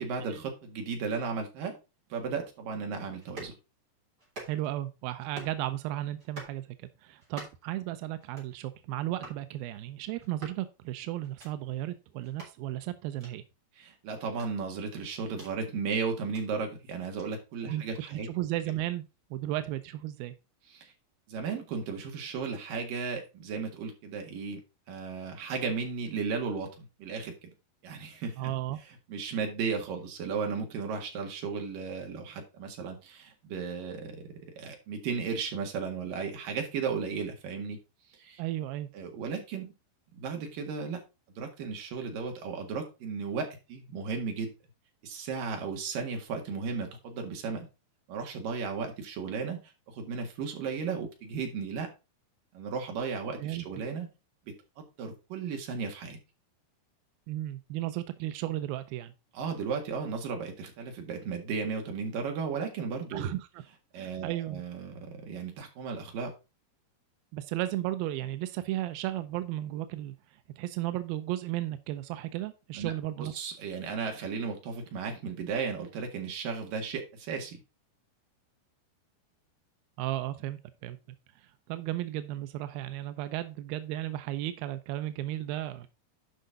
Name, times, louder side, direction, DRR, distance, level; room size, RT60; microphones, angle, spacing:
voice 1, 0.0-1.8 2.1-3.5 13.8-18.3 20.7-20.9 21.3-24.6 24.9-27.3 27.8-28.5 29.1-34.2 34.6-37.8 38.1-38.4 38.9-39.7 40.1-41.0 41.4-44.5 45.0-47.7 48.1-51.9 52.5-54.1 54.5-56.2 59.3-63.3 63.9-66.3 72.7-72.9 73.2-77.6, right 5 dB, 60° right, 3 dB, 3.3 m, -35 dB
sound 1, 3.2-3.6 4.2-4.8 5.2-5.6 6.2-6.6 7.2-7.7 8.2-8.5 9.2-9.4 10.2-10.6 11.2-11.5 12.2-12.5 13.2-13.3 14.2-15.5 16.2-16.4 17.2-17.3, right 2 dB, 25° right, 3.5 m, -47 dB
voice 2, 4.5-13.4 17.6-17.8 18.1-19.0 19.3-20.3 28.4-28.8 38.4-38.9 53.4-53.7 57.3-59.1 63.1-63.6 64.0-64.6 67.3-70.2 70.6-73.3 80.0-81.0 81.4-85.9, right 14 dB, 85° right, 11 dB, 2.2 m, -34 dB
10.0 x 5.6 x 3.9 m, 0.28 s
omnidirectional pair, 4.9 m